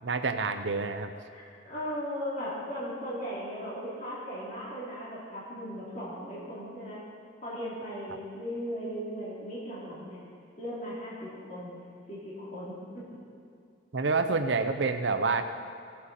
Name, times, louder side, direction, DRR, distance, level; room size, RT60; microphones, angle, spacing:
voice 1, 0.0-1.1 13.9-15.4, right 4 dB, 75° right, 8 dB, 0.7 m, -28 dB
voice 2, 1.3-7.0 7.4-10.2 10.6-11.8 12.1-13.2, equal, 40° left, -8 dB, 2.9 m, -37 dB
17.0 x 7.5 x 4.2 m, 2.4 s
head